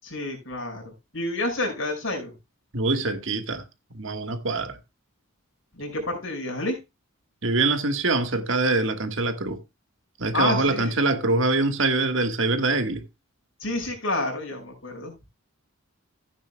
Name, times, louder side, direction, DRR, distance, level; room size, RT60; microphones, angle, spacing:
voice 1, 0.0-2.3 5.7-6.8 10.3-10.9 13.6-15.3, left 2 dB, 65° left, 5.2 m, -29 dB
voice 2, 2.7-3.6 3.9-4.8 7.4-9.6 10.2-13.0, right 3 dB, 65° right, 1.5 m, -24 dB
14.5 x 9.5 x 2.2 m
head